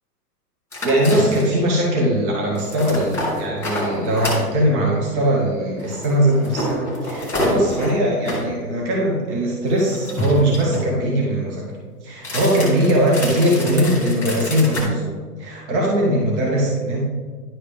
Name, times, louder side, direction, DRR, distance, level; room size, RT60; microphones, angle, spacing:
sound 1, 0.7-1.6 2.5-4.5 5.8-8.5 9.7-10.9 12.2-14.8, left 1 dB, 5° left, 2.3 m, -28 dB
voice 1, 0.8-11.7 12.0-17.0, right 1 dB, 45° right, -3 dB, 1.9 m, -20 dB
11.0 x 4.9 x 3.5 m, 1.5 s
hypercardioid pair, 120°, 47 cm